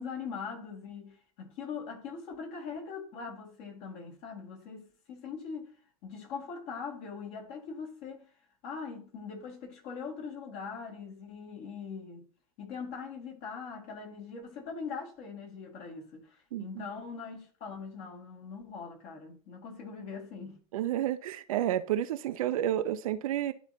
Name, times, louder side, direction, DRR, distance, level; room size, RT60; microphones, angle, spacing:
voice 1, 0.0-5.8 6.0-8.3 8.6-12.3 12.6-20.6, left 5 dB, 45° left, 2.0 m, -41 dB
voice 2, 16.5-16.9 20.7-23.5, right 12 dB, 60° right, 0.5 m, -30 dB
11.5 x 4.0 x 2.7 m
figure-of-eight pair, 90°, 20 cm